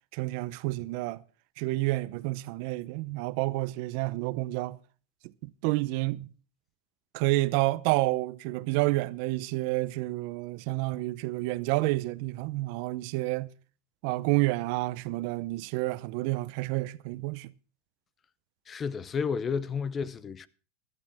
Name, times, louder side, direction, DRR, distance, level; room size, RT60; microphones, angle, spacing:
voice 1, 0.1-1.2 1.6-4.8 5.4-6.3 7.1-13.5 14.0-17.5, right 20 dB, 60° right, 0.7 m, -29 dB
voice 2, 18.7-20.5, left 6 dB, 25° left, 0.7 m, -31 dB
15.5 x 12.0 x 3.5 m
hypercardioid pair, 115°, 0 cm